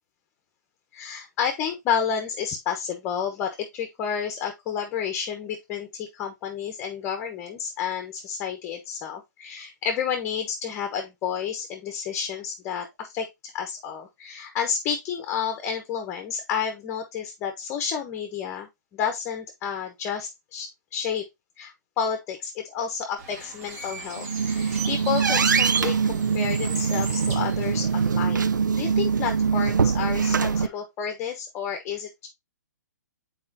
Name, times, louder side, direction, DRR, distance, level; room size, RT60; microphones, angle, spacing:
voice 1, 0.9-21.3 21.6-28.5 28.8-32.3, left 7 dB, 25° left, 1.1 m, -30 dB
Bird, 23.2-28.2, right 4 dB, 45° right, 2.3 m, -37 dB
sound 1, 24.2-30.7, right 6 dB, 85° right, 0.5 m, -23 dB
7.8 x 4.4 x 2.8 m
hypercardioid pair, 130°, 10 cm